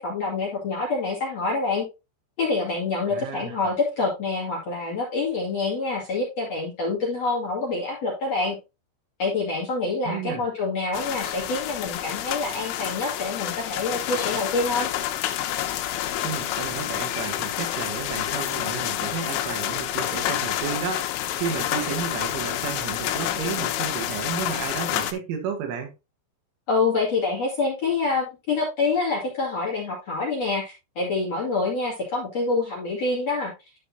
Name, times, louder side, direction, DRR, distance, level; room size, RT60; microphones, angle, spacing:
voice 1, 0.0-1.9 2.4-8.6 9.2-14.9 26.7-33.5, left 3 dB, 45° left, 2.6 m, -26 dB
voice 2, 3.1-3.6 10.0-10.4 16.2-21.1 21.4-25.9, right 7 dB, 80° right, 4.0 m, -32 dB
sound 1, 10.9-25.1, left 12 dB, 90° left, 3.2 m, -28 dB
12.0 x 5.3 x 2.7 m
omnidirectional pair, 5.5 m